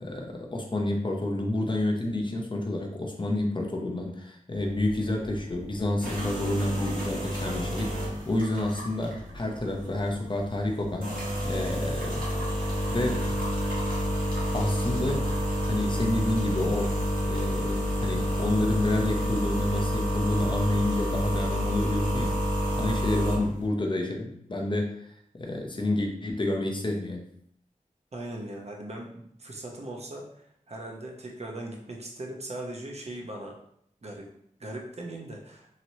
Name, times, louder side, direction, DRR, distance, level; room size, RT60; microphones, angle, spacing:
voice 1, 0.0-12.3 12.9-13.3 14.5-15.3 15.6-17.0 17.3-22.4 22.7-25.0 25.3-27.3, left 1 dB, 35° left, 1 dB, 0.6 m, -29 dB
sound 1, 4.5-23.7, equal, 85° right, 1.1 m, -29 dB
voice 2, 28.1-33.6 34.0-34.3 34.6-35.7, right 1 dB, 50° right, 0 dB, 0.7 m, -39 dB
3.0 x 2.9 x 2.6 m, 0.70 s
wide cardioid pair, 80°, 14 cm